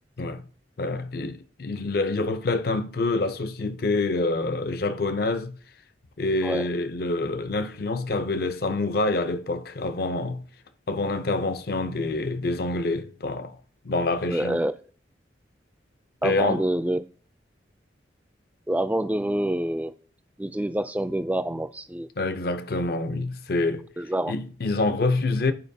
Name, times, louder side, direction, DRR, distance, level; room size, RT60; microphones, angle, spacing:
voice 1, 0.8-5.6 6.2-10.5 10.9-13.6 13.8-14.6 16.2-16.6 22.2-23.9 24.3-25.5, left 2 dB, 55° left, 0.5 m, -26 dB
voice 2, 14.3-14.7 16.2-17.0 18.7-19.9 20.4-22.1 24.0-24.3, right 1 dB, 10° right, 0.3 m, -26 dB
11.0 x 4.6 x 2.7 m
head